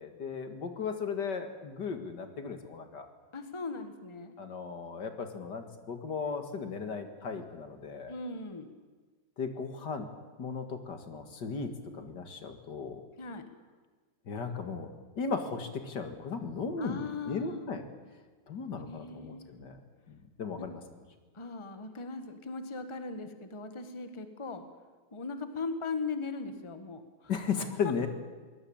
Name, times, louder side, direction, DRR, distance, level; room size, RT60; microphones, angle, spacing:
voice 1, 0.0-3.1 4.4-8.1 9.4-10.1 10.4-13.0 14.3-17.8 18.5-19.8 20.1-20.8 27.3-28.1, left 5 dB, 65° left, 7 dB, 2.4 m, -36 dB
voice 2, 3.3-4.3 8.1-8.7 13.2-13.5 16.8-17.7 18.9-19.6 20.6-20.7 21.3-24.6 25.1-27.3 27.8-27.9, left 4 dB, 15° left, 8 dB, 1.5 m, -39 dB
23.0 x 19.0 x 8.8 m, 1.4 s
omnidirectional pair, 2.0 m